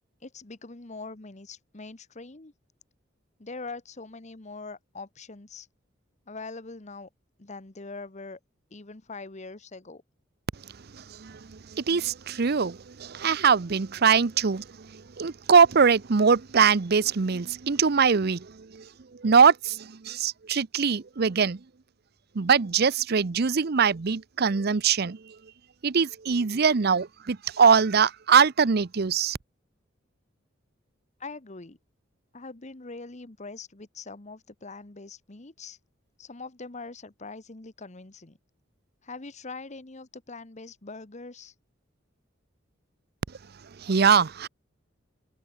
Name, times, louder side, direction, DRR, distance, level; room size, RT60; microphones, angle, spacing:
voice 1, 0.2-2.5 3.4-5.7 6.3-7.1 7.4-8.4 8.7-10.0 31.2-31.8 32.3-35.8 36.2-38.4 39.0-41.5, left 3 dB, 40° left, 1.3 m, -42 dB
voice 2, 10.9-18.8 19.1-21.6 22.3-25.4 25.8-29.4 43.8-44.5, right 6 dB, 55° right, 0.7 m, -22 dB
head